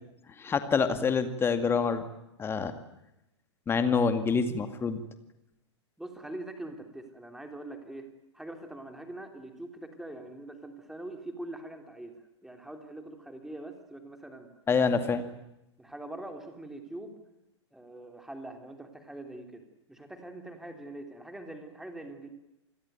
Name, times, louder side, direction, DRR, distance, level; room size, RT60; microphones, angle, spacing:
voice 1, 0.4-2.0 2.4-2.7 3.7-5.0 14.7-15.2, left 5 dB, 15° left, 9 dB, 2.1 m, -26 dB
voice 2, 6.0-14.5 15.8-17.2 17.7-19.6 19.9-22.3, right 1 dB, 5° right, 5 dB, 3.3 m, -43 dB
28.0 x 21.5 x 9.4 m, 0.88 s
figure-of-eight pair, 105°, 15 cm